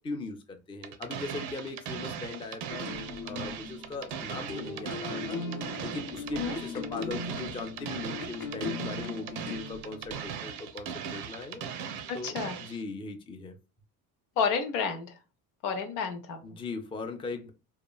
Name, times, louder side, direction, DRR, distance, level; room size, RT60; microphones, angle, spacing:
voice 1, 0.0-2.9 3.2-11.6 12.1-13.6 16.4-17.5, left 3 dB, 10° left, 6 dB, 0.4 m, -39 dB
sound 1, 0.8-12.8, right 7 dB, 75° right, 0.6 m, -39 dB
sound 2, 2.7-10.4, left 4 dB, 40° left, 0.7 m, -39 dB
voice 2, 12.1-12.6 14.4-15.2 15.6-16.6, left 6 dB, 80° left, 6 dB, 0.7 m, -31 dB
2.8 x 2.3 x 2.3 m, 0.31 s
supercardioid pair, 70°, 46 cm